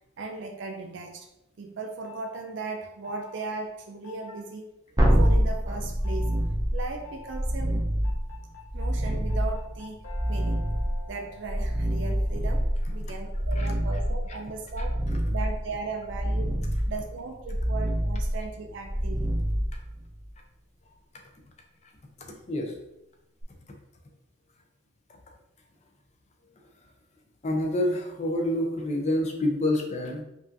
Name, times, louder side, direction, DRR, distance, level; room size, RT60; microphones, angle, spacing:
voice 1, 0.2-1.3 1.6-4.7 5.1-6.4 6.7-7.9 8.7-10.0 10.3-10.7 11.1-14.9 15.3-16.6 16.9-19.3, right 3 dB, 65° right, 3 dB, 0.4 m, -37 dB
sound 1, 2.0-2.4 3.0-3.4 4.0-4.4 5.0-5.4 6.0-6.4 7.0-7.4 8.0-13.1, left 5 dB, 75° left, 1.1 m, -48 dB
sound 2, 5.0-20.3 23.4-23.5, equal, 20° right, 0.6 m, -27 dB
voice 2, 13.5-14.0 14.3-14.4 14.8-14.9 16.6-16.8 21.8-21.9 22.2-22.8 25.1-25.2 26.8-26.9 27.4-30.2, left 1 dB, 35° left, 2 dB, 0.5 m, -28 dB
5.3 x 2.5 x 2.6 m, 0.87 s
head